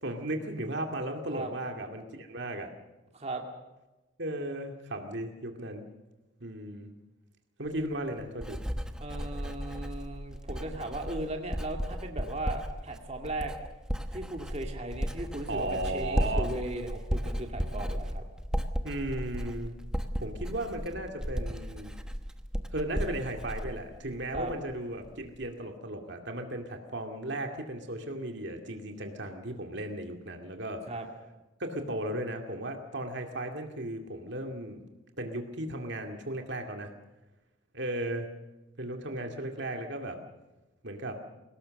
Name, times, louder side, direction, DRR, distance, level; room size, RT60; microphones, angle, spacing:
voice 1, 0.0-2.7 4.2-5.9 6.4-6.9 7.6-8.6 15.5-16.5 18.8-19.8 20.2-21.9 22.7-30.8 31.6-34.8 35.2-36.9 37.7-38.3 38.8-40.2 40.8-41.2, right 1 dB, 60° right, 4 dB, 2.3 m, -35 dB
Writing, 7.7-24.7 25.0-25.5, equal, 5° right, 1.1 m, -35 dB
voice 2, 9.0-13.5 14.1-18.3 24.3-24.5 30.9-31.1, right 2 dB, 35° right, 3 dB, 2.3 m, -37 dB
23.5 x 18.5 x 6.5 m, 1.1 s
head